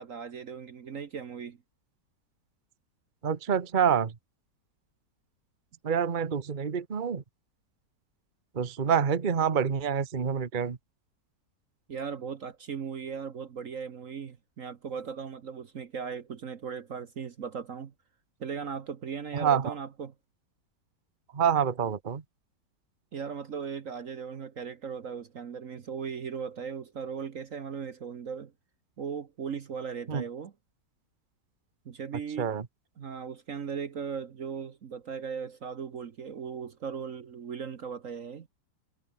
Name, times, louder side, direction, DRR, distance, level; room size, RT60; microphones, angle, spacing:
voice 1, 0.0-1.6 11.9-17.9 18.4-20.1 23.1-28.5 29.0-30.5 31.8-32.5 33.0-38.5, right 6 dB, 50° right, 1.4 m, -38 dB
voice 2, 3.2-4.1 5.8-7.2 8.5-10.8 19.3-19.7 21.3-22.2 30.1-30.2 32.4-32.6, right 7 dB, 30° right, 1.2 m, -27 dB
omnidirectional pair, 1.9 m